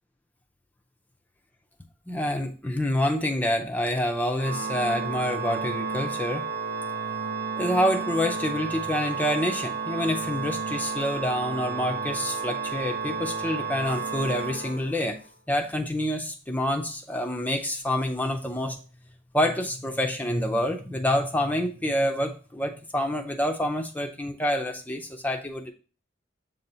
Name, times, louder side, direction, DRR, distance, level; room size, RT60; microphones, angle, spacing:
voice 1, 2.1-6.4 7.6-15.2 15.5-18.8 19.3-25.7, left 1 dB, 10° left, 3 dB, 0.4 m, -27 dB
Organ, 4.4-15.3, right 5 dB, 55° right, 1.0 m, -32 dB
7.6 x 2.8 x 5.3 m, 0.38 s
head